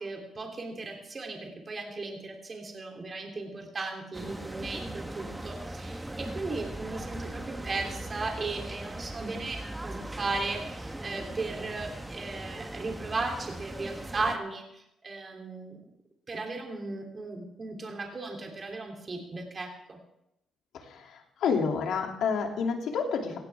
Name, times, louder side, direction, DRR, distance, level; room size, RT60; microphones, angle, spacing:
voice 1, 0.0-15.8 16.3-20.0, right 3 dB, 35° right, 1 dB, 3.2 m, -36 dB
sound 1, 4.1-14.4, right 1 dB, 10° right, 1.3 m, -39 dB
voice 2, 20.7-23.4, left 5 dB, 75° left, 2 dB, 2.8 m, -29 dB
17.5 x 16.5 x 3.6 m, 0.85 s
cardioid pair, 90°, 0 cm